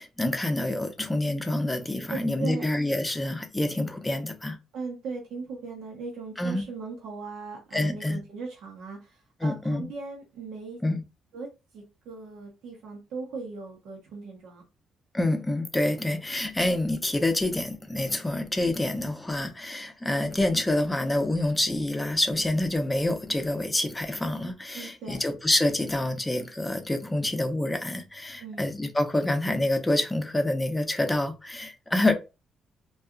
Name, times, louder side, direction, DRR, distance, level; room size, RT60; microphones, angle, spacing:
voice 1, 0.0-4.6 6.4-6.6 7.7-8.2 9.4-9.9 10.8-11.0 15.1-32.1, left 1 dB, 15° left, 0.6 m, -27 dB
voice 2, 2.1-2.6 4.7-10.8 11.3-11.5 11.7-14.6 16.1-16.2 24.7-25.2 28.4-28.7, right 4 dB, 80° right, 0.8 m, -38 dB
2.7 x 2.3 x 2.4 m
cardioid pair, 90°, 0 cm